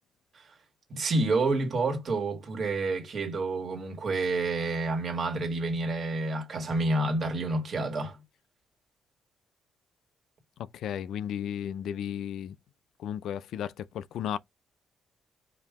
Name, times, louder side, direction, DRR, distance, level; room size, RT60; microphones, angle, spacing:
voice 1, 0.9-8.2, right 2 dB, 40° right, 1.7 m, -29 dB
voice 2, 10.7-12.6 13.0-14.4, left 9 dB, 75° left, 0.3 m, -34 dB
5.2 x 2.8 x 3.5 m
cardioid pair, 150°, 0 cm